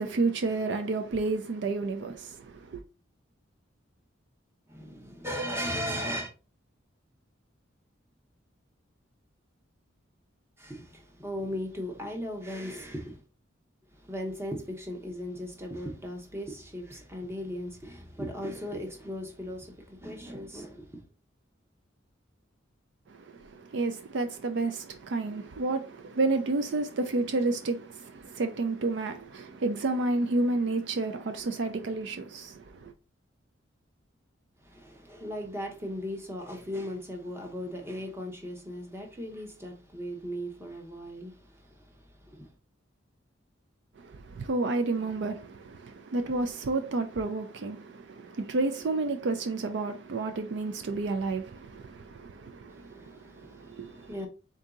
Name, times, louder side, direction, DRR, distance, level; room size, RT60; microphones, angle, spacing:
voice 1, 0.0-2.8 23.1-32.9 44.0-54.1, right 3 dB, 60° right, 0.4 m, -31 dB
voice 2, 4.7-6.3 10.6-13.2 13.9-21.0 34.6-42.5 52.7-54.3, equal, 10° right, 0.8 m, -37 dB
3.8 x 2.7 x 3.6 m
head